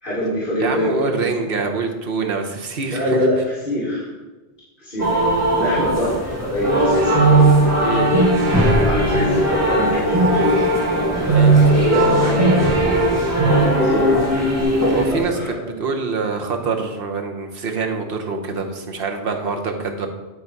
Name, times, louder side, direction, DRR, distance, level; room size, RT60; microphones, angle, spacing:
voice 1, 0.0-1.3 2.9-4.1 4.8-7.5 8.7-10.7 11.2-12.7 13.8-14.1 14.8-15.6, left 1 dB, 55° left, -10 dB, 2.3 m, -24 dB
voice 2, 0.6-3.2 7.8-8.1 11.3-11.5 14.9-20.1, right 4 dB, 65° right, 3 dB, 1.1 m, -25 dB
sound 1, 5.0-15.2, equal, 15° right, 1.7 m, -20 dB
sound 2, 6.6-14.6, right 4 dB, 30° right, 1.2 m, -20 dB
10.5 x 4.1 x 4.6 m, 1.2 s
omnidirectional pair, 1.0 m